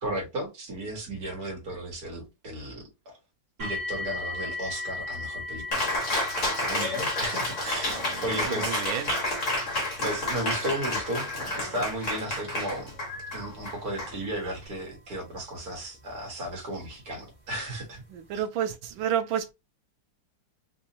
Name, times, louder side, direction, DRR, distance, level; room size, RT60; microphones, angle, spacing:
voice 1, 0.0-3.1 3.6-6.0 6.7-8.8 10.0-12.9 13.3-18.0 18.3-18.4, right 1 dB, 55° right, 2.0 m, -34 dB
sound 1, 3.6-16.5 17.3-17.4 18.0-18.1, left 2 dB, 30° right, 1.8 m, -40 dB
Cheering, 5.7-14.7, left 1 dB, 45° left, 1.6 m, -30 dB
voice 2, 7.9-9.1 18.1-19.5, right 9 dB, 85° right, 1.4 m, -31 dB
4.0 x 2.6 x 2.7 m
omnidirectional pair, 2.1 m